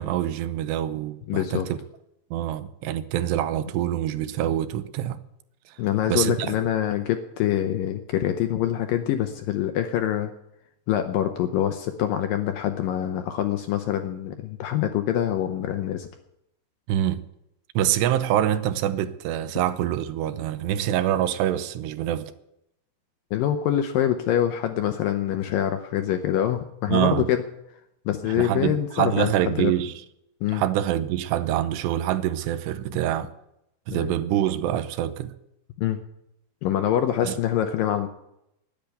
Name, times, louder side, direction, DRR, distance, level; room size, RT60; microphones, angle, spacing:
voice 1, 0.0-1.8 2.3-5.2 5.7-5.8 6.1-6.6 16.9-17.3 17.8-22.3 26.9-27.3 28.4-29.9 30.5-33.3 33.9-35.3 37.2-37.4, right 12 dB, 90° right, 2.9 m, -25 dB
voice 2, 1.3-1.7 5.8-10.3 10.9-16.1 23.3-27.4 28.1-29.7 30.4-30.6 33.9-34.1 35.8-36.0 36.6-38.1, left 11 dB, 75° left, 2.1 m, -25 dB
10.5 x 10.5 x 9.4 m
omnidirectional pair, 4.9 m